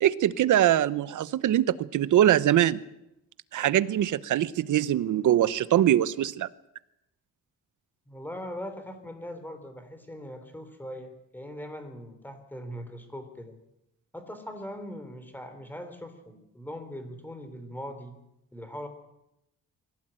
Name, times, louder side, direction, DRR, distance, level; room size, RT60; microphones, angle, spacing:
voice 1, 0.0-2.8 3.5-6.5, right 11 dB, 75° right, 16 dB, 1.0 m, -23 dB
voice 2, 8.1-13.6 14.1-18.2 18.5-18.9, equal, 5° left, 8 dB, 3.6 m, -40 dB
23.0 x 16.5 x 9.1 m, 0.87 s
cardioid pair, 145°, 31 cm